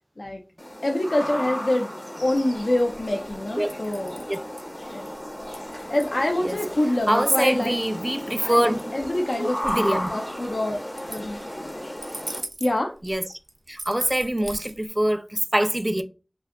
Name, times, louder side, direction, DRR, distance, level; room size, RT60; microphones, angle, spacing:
sound 1, 0.6-12.4, equal, 45° left, 0.7 m, -34 dB
voice 1, 0.8-1.9 2.2-4.2 4.9-5.1 5.9-7.8 8.4-11.4 12.6-12.9, left 1 dB, 85° left, 0.3 m, -26 dB
sound 2, 2.2-14.9, right 2 dB, 85° right, 0.4 m, -41 dB
voice 2, 7.1-8.8 9.4-10.1 13.0-13.2 13.7-16.0, right 1 dB, 20° right, 0.3 m, -24 dB
2.6 x 2.2 x 3.5 m
wide cardioid pair, 45°, 0 cm